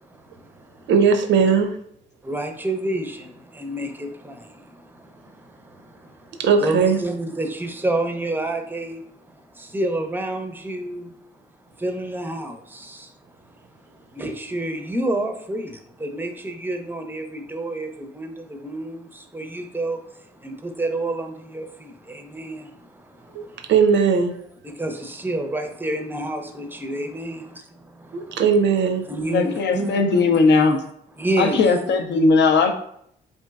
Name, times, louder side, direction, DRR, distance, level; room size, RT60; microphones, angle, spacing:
voice 1, 0.0-0.9 2.2-9.1 9.3-11.1 11.8-13.1 13.4-13.5 13.9-23.7 24.6-27.4 28.0-28.4 29.1-30.4 31.2-31.7, right 1 dB, 10° right, 0.6 m, -29 dB
voice 2, 0.9-1.7 6.4-7.0 23.3-24.3 28.1-29.0, right 6 dB, 60° right, 0.5 m, -18 dB
voice 3, 29.3-30.8 31.4-32.7, left 4 dB, 55° left, 0.5 m, -18 dB
2.9 x 2.5 x 2.3 m
hypercardioid pair, 50°, 21 cm